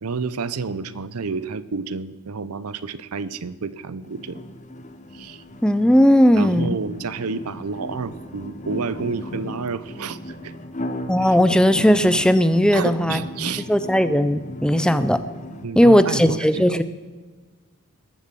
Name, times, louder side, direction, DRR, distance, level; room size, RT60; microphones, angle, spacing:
voice 1, 0.0-4.4 5.1-5.4 6.4-10.5 11.2-11.4 12.7-13.7 15.6-16.8, right 4 dB, 85° right, 16 dB, 0.7 m, -30 dB
sound 1, 4.0-15.6, left 1 dB, 35° left, 1.0 m, -37 dB
voice 2, 5.6-6.8 11.1-15.2 15.8-16.8, equal, 5° left, 12 dB, 0.5 m, -17 dB
19.5 x 7.1 x 7.5 m, 1.4 s
head